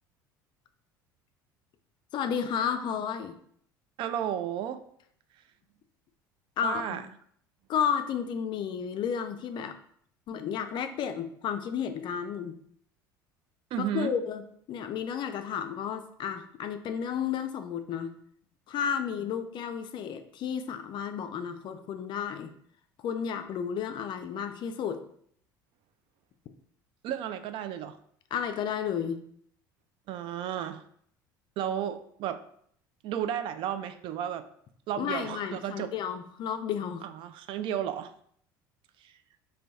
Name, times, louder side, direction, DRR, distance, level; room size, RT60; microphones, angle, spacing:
voice 1, 2.1-3.3 6.6-7.0 7.7-9.7 10.3-12.5 13.8-18.1 18.7-22.5 23.0-25.0 28.3-29.2 35.0-37.1, left 8 dB, 45° left, 8 dB, 0.4 m, -32 dB
voice 2, 4.0-4.8 6.6-7.1 13.7-14.1 27.0-28.0 30.1-30.8 31.6-32.4 33.0-34.4 34.9-35.9 37.0-38.1 39.0-39.1, right 10 dB, 50° right, 10 dB, 0.3 m, -33 dB
3.9 x 2.2 x 3.4 m, 0.65 s
hypercardioid pair, 70°, 11 cm